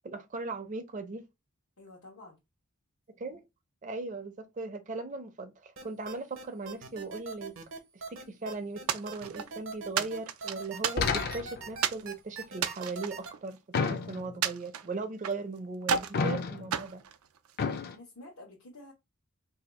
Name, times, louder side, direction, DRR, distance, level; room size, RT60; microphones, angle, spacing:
voice 1, 0.0-1.2 3.2-3.4 3.8-7.5 8.1-17.0, right 3 dB, 35° right, 0.5 m, -38 dB
voice 2, 1.8-2.4 17.9-18.9, left 2 dB, 90° left, 1.0 m, -50 dB
sound 1, 5.8-13.3, right 4 dB, 70° right, 0.8 m, -41 dB
sound 2, 8.9-9.5 10.0-11.4 11.8-12.1 12.5-13.9 14.4-15.4 15.8-16.2 16.7-17.8, right 7 dB, 90° right, 0.4 m, -33 dB
sound 3, 11.0-11.8 13.7-14.5 16.1-16.8 17.6-18.0, left 5 dB, 45° left, 0.4 m, -31 dB
2.7 x 2.3 x 4.1 m
head